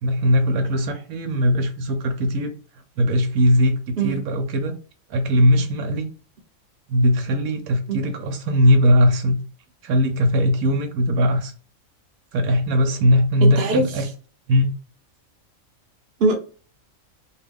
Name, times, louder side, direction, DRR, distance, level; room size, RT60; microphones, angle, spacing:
voice 1, 0.0-2.5 3.0-3.7 4.0-4.7 5.1-6.1 6.9-9.4 9.8-11.5 12.3-14.1 14.5-14.7, equal, 85° right, 1.0 m, -19 dB
voice 2, 13.4-13.8 16.2-16.4, right 3 dB, 55° right, 0.8 m, -21 dB
2.7 x 2.2 x 3.4 m
omnidirectional pair, 1.4 m